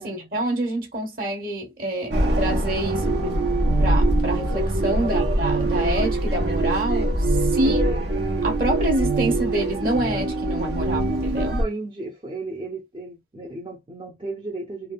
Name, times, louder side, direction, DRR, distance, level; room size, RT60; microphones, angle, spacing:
voice 1, 0.0-3.4 3.8-7.8 8.4-11.6, right 1 dB, 55° right, 1.1 m, -27 dB
sound 1, 2.1-11.6, right 2 dB, 90° right, 1.0 m, -23 dB
voice 2, 5.0-5.4 7.6-8.1 11.3-14.9, right 2 dB, 25° right, 0.5 m, -35 dB
3.2 x 2.2 x 2.3 m
head